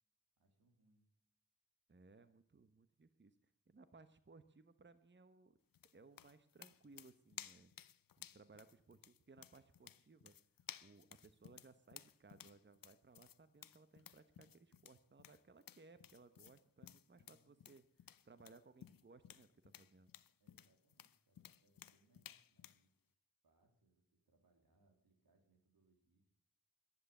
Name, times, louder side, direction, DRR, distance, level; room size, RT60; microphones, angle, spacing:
voice 1, 0.4-1.0 17.1-17.6 20.4-23.2 23.4-26.3, right 2 dB, 85° right, 4 dB, 3.1 m, -77 dB
voice 2, 1.9-5.6 5.9-7.7 8.2-10.4 10.8-20.1, right 3 dB, 30° right, 12 dB, 1.1 m, -63 dB
sound 1, 5.7-22.8, left 9 dB, 70° left, 0.7 m, -58 dB
12.0 x 11.0 x 6.7 m, 0.70 s
cardioid pair, 40°, 35 cm